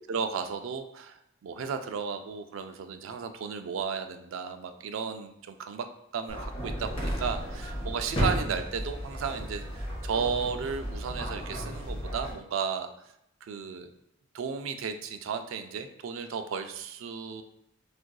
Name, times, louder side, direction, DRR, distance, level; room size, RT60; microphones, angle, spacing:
voice 1, 0.1-5.9 6.1-13.1 13.4-13.9 14.3-17.4, right 6 dB, 80° right, 8 dB, 0.3 m, -34 dB
sound 1, 6.3-12.3, equal, 30° left, 1.0 m, -33 dB
4.6 x 2.5 x 2.2 m, 0.80 s
head